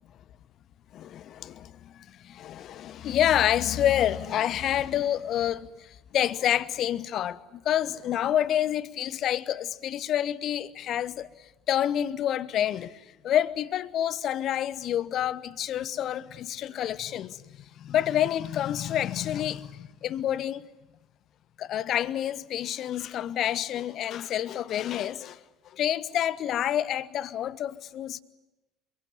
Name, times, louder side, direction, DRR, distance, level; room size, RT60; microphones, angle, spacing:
voice 1, 0.9-17.4 17.8-20.7 21.6-28.2, left 11 dB, 45° left, 1.0 m, -28 dB
26.0 x 23.5 x 9.6 m
figure-of-eight pair, 60°, 0 cm